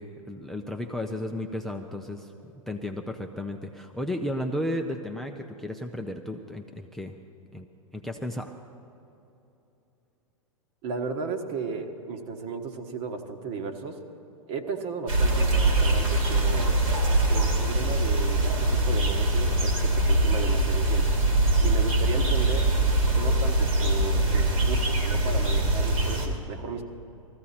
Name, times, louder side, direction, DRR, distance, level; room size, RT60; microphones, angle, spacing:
voice 1, 0.0-7.2 7.5-7.7 7.9-8.5, left 1 dB, ahead, 4 dB, 0.6 m, -34 dB
voice 2, 10.8-14.0 14.5-16.7 17.3-21.1 21.6-22.7 23.1-26.8, right 5 dB, 45° right, 6 dB, 1.4 m, -35 dB
sound 1, 15.1-26.3, right 2 dB, 75° right, 2.8 m, -23 dB
19.5 x 15.0 x 4.3 m, 2.9 s
figure-of-eight pair, 105°, 18 cm